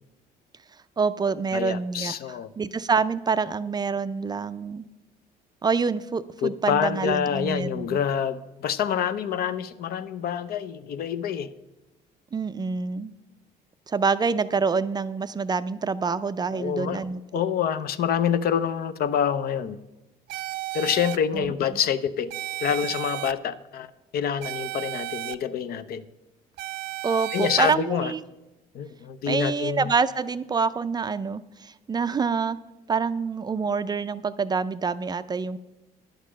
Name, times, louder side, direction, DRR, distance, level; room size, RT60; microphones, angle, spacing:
voice 1, 1.0-4.8 5.6-8.0 12.3-13.1 13.9-17.2 21.3-21.5 27.0-28.2 29.3-32.6 32.9-35.6, right 5 dB, 25° right, 13 dB, 0.4 m, -26 dB
voice 2, 1.5-2.5 6.4-11.5 16.5-17.0 17.3-19.8 20.7-22.3 22.6-23.9 24.1-26.0 27.3-28.1 28.7-29.9, left 8 dB, 65° left, 14 dB, 0.6 m, -26 dB
sound 1, 20.3-21.2 22.3-23.3 24.4-25.3 26.6-27.7, right 17 dB, 80° right, 0.5 m, -33 dB
10.0 x 6.6 x 6.2 m, 1.0 s
cardioid pair, 110°, 17 cm